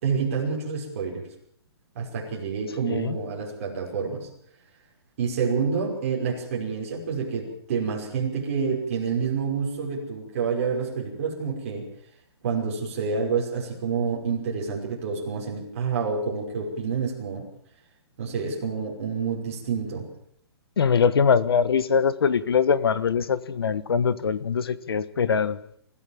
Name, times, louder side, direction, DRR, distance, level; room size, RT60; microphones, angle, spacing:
voice 1, 0.0-1.3 2.0-4.3 5.2-11.8 12.4-17.4 18.2-20.1, right 5 dB, 30° right, -1 dB, 5.7 m, -28 dB
voice 2, 2.8-3.2 20.8-25.6, left 6 dB, 65° left, 16 dB, 1.4 m, -22 dB
25.0 x 15.0 x 7.4 m, 0.68 s
hypercardioid pair, 180°, 14 cm